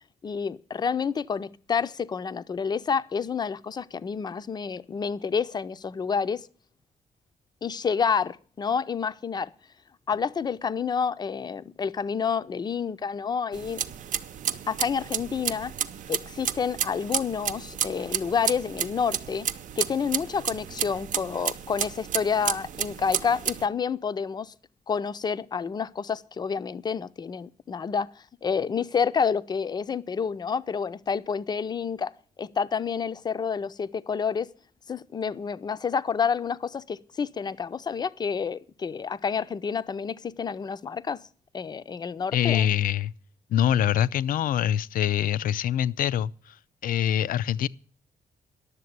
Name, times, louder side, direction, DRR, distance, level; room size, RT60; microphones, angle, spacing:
voice 1, 0.2-6.5 7.6-9.5 10.1-13.8 14.7-15.7 16.1-19.5 19.8-24.5 24.9-32.1 32.4-34.5 34.9-41.2 41.5-42.7, left 6 dB, 30° left, 0.5 m, -29 dB
sound 1, 13.5-23.6, right 9 dB, 65° right, 0.7 m, -32 dB
voice 2, 42.3-43.1 43.5-46.6 46.8-47.7, left 10 dB, 80° left, 0.5 m, -24 dB
11.0 x 7.4 x 9.3 m
wide cardioid pair, 160°, 14 cm